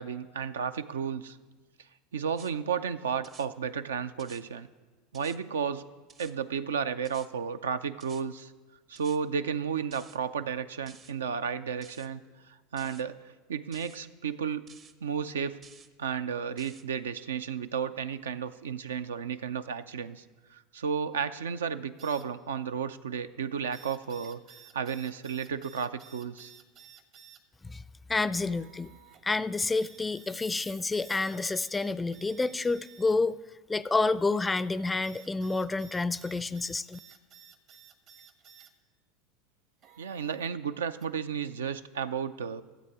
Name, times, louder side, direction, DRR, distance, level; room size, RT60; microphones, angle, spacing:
voice 1, 0.0-1.4 2.1-4.7 5.1-5.8 6.2-8.5 8.9-12.2 12.7-13.2 13.5-14.6 15.0-15.6 16.0-20.2 20.5-24.4 24.7-26.5 40.0-42.6, right 7 dB, 80° right, 12 dB, 0.4 m, -33 dB
sound 1, 2.3-2.5 3.2-3.5 4.2-4.4 5.1-5.4 6.1-6.3 7.0-7.3 8.0-8.2 8.9-9.2 9.9-10.2 10.9-11.1 11.8-12.1 12.8-13.0 13.7-14.0 14.7-14.9 15.6-15.9 16.6-16.8, right 6 dB, 35° right, 0.7 m, -53 dB
sound 2, 22.0-22.3 23.7-27.4 28.5-29.2 29.7-33.2 34.3-38.7 39.8-40.5 41.0-41.1, right 9 dB, 50° right, 1.1 m, -55 dB
voice 2, 28.1-28.9 29.2-33.4 33.7-37.0, left 3 dB, 15° left, 18 dB, 0.4 m, -29 dB
13.5 x 7.8 x 4.7 m, 1.3 s
hypercardioid pair, 85°, 0 cm